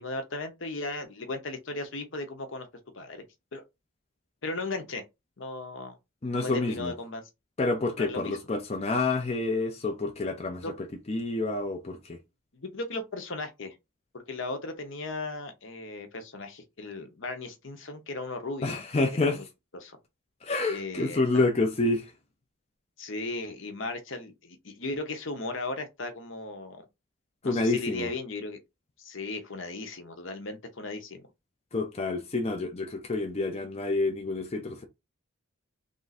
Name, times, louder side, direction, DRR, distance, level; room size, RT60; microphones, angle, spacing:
voice 1, 0.0-2.7 2.9-3.2 3.5-3.6 4.4-5.0 5.4-6.0 6.3-7.2 8.0-8.3 10.6-10.7 12.5-13.7 14.1-18.8 19.2-19.4 19.8-20.0 20.7-21.2 23.0-26.8 27.4-28.6 29.0-31.3, left 2 dB, 65° left, 0.9 m, -36 dB
voice 2, 6.2-6.9 7.6-12.2 18.6-19.4 20.4-22.1 27.4-28.1 31.7-34.8, left 2 dB, 30° left, 0.5 m, -28 dB
3.6 x 2.6 x 4.1 m
head